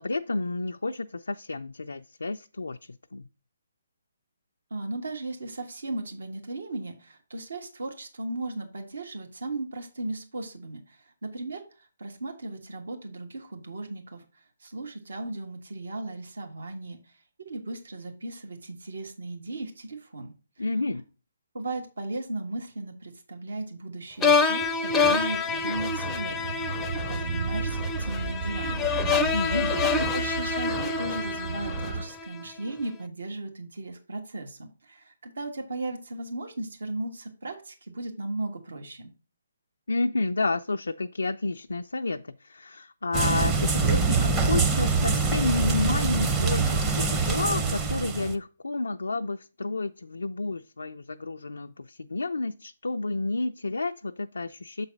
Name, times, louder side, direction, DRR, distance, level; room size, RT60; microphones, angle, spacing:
voice 1, 0.0-3.3 20.6-21.0 29.3-29.7 39.9-54.9, left 3 dB, 80° left, 0.3 m, -30 dB
voice 2, 4.7-14.2 14.6-17.0 17.4-20.6 21.5-26.8 27.1-39.1, right 2 dB, 70° right, 1.5 m, -36 dB
sound 1, 24.2-32.4, left 5 dB, 15° left, 0.5 m, -27 dB
sound 2, 25.8-32.0, right 5 dB, 40° right, 1.2 m, -34 dB
sound 3, 43.1-48.3, right 4 dB, 20° right, 0.7 m, -24 dB
7.0 x 4.0 x 5.2 m
figure-of-eight pair, 145°, 0 cm